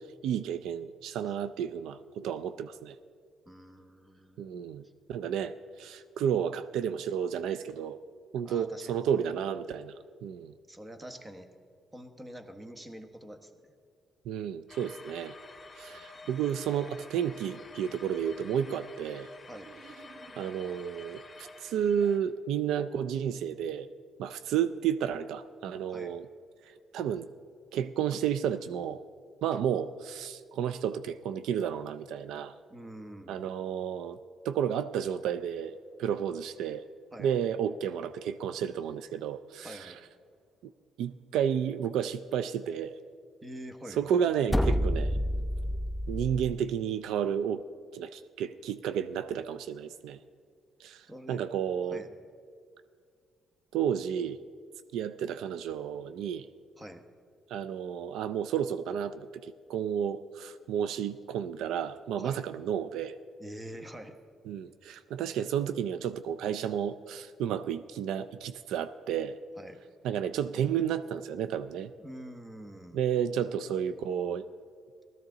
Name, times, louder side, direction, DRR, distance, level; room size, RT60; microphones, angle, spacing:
voice 1, 0.2-2.9 4.4-4.8 5.1-8.0 8.3-9.9 10.2-10.5 14.3-15.3 15.8-19.3 20.4-23.9 24.2-26.3 26.9-27.3 27.7-29.0 29.4-32.5 33.3-34.2 34.4-36.8 37.2-39.9 41.0-42.9 44.0-45.1 46.1-47.6 47.9-50.2 50.8-52.0 53.7-54.4 54.9-56.5 57.5-63.2 64.5-69.4 70.0-71.9 72.9-74.5, right 8 dB, 85° right, 12 dB, 0.3 m, -32 dB
voice 2, 3.4-4.9 8.4-9.5 10.7-11.5 11.9-13.5 15.9-16.1 19.5-19.7 25.9-26.1 32.7-33.5 37.1-37.3 39.6-40.0 43.4-44.4 51.1-51.4 51.9-52.1 56.8-57.0 62.2-62.4 63.4-64.2 69.6-69.8 72.0-73.0, equal, 20° right, 7 dB, 1.2 m, -46 dB
sound 1, 14.7-22.2, left 2 dB, 30° left, 2.0 m, -49 dB
sound 2, 19.5-20.8 21.4-22.3, right 5 dB, 50° right, 1.3 m, -54 dB
sound 3, 44.5-46.6, equal, ahead, 0.4 m, -28 dB
17.0 x 13.5 x 3.9 m, 2.1 s
cardioid pair, 90°, 0 cm